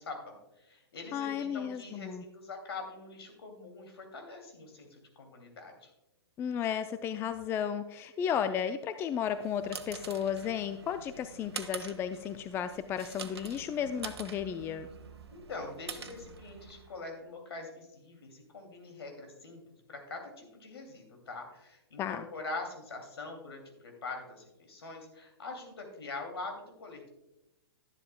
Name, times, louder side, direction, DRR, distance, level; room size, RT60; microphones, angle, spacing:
voice 1, 0.0-5.9 15.3-19.6 19.9-27.1, left 3 dB, 70° left, 3 dB, 2.6 m, -44 dB
voice 2, 1.1-2.2 6.4-14.9 22.0-22.2, left 8 dB, 15° left, 11 dB, 0.4 m, -34 dB
sound 1, 9.2-17.0, right 5 dB, 75° right, 1.1 m, -46 dB
12.0 x 11.0 x 2.2 m, 0.94 s
hypercardioid pair, 120°, 14 cm